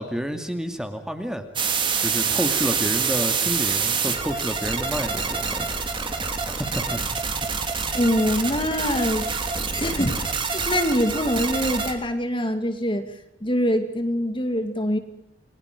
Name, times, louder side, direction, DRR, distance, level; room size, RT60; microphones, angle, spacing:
voice 1, 0.0-1.5 2.0-5.7 6.2-7.0, equal, 5° right, 6 dB, 2.3 m, -30 dB
sound 1, 1.6-11.9, right 5 dB, 25° right, 2.9 m, -26 dB
voice 2, 7.9-9.3 9.8-13.1 13.4-15.0, equal, 25° left, 7 dB, 2.3 m, -24 dB
29.5 x 22.0 x 5.2 m, 0.76 s
head